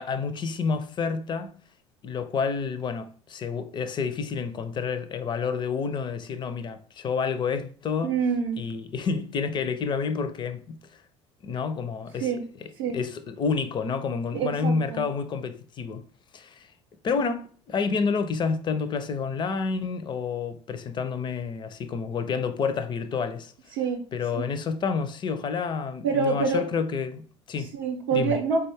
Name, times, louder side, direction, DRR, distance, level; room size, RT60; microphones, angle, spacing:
voice 1, 0.0-1.5 2.0-8.2 8.6-10.8 11.4-12.3 12.6-16.1 16.3-16.7 17.0-23.5 24.1-27.7 28.1-28.4, left 5 dB, 35° left, 0.4 m, -29 dB
voice 2, 8.0-8.6 12.2-12.4 12.8-13.0 14.3-15.1 23.7-24.0 24.4-24.5 26.0-26.6 27.7-28.7, right 5 dB, 70° right, 0.5 m, -26 dB
3.8 x 2.3 x 3.3 m
hypercardioid pair, 65°, 14 cm